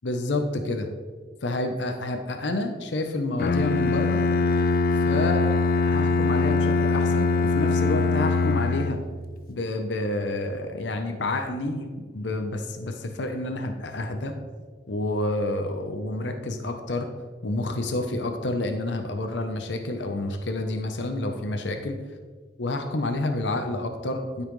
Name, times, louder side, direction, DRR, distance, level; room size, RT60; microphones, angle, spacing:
voice 1, 0.0-0.9 1.4-4.2 5.0-9.0 9.5-14.4 14.9-17.1 17.4-22.0 22.6-24.4, left 2 dB, 80° left, 6 dB, 0.8 m, -29 dB
Bowed string instrument, 3.4-9.3, left 4 dB, 50° left, 0.4 m, -22 dB
12.5 x 5.6 x 3.2 m, 1.5 s
head